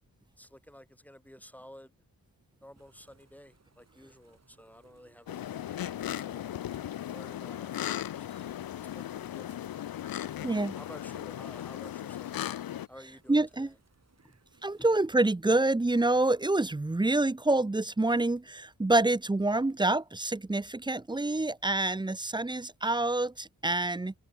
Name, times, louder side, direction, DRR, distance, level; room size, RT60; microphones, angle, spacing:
voice 1, 0.4-1.9 2.6-6.5 7.1-8.5 8.9-9.7 10.1-12.4 12.9-13.8 14.2-14.3 14.8-14.9, equal, 5° left, 7.6 m, -53 dB
sound 1, 2.8-15.0, right 4 dB, 45° right, 7.1 m, -65 dB
sound 2, 5.3-12.9, left 11 dB, 75° left, 0.6 m, -37 dB
voice 2, 10.4-10.7 13.3-13.7 14.6-24.1, right 2 dB, 15° right, 0.6 m, -27 dB
wide cardioid pair, 120°, 36 cm